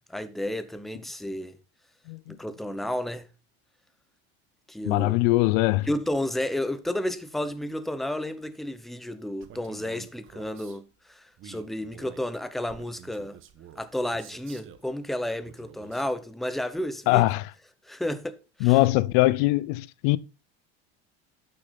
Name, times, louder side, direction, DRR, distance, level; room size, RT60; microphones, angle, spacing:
voice 1, 0.1-1.6 2.3-3.3 4.7-5.2 5.9-13.4 13.8-17.2 17.9-18.7, left 1 dB, ahead, 0.7 m, -32 dB
voice 2, 4.8-5.9 17.1-17.5 18.6-20.2, left 19 dB, 80° left, 0.7 m, -22 dB
Male speech man speaking, 9.4-10.8 11.4-14.9 15.4-16.1, right 8 dB, 40° right, 1.2 m, -49 dB
12.0 x 6.6 x 4.0 m
cardioid pair, 145°, 32 cm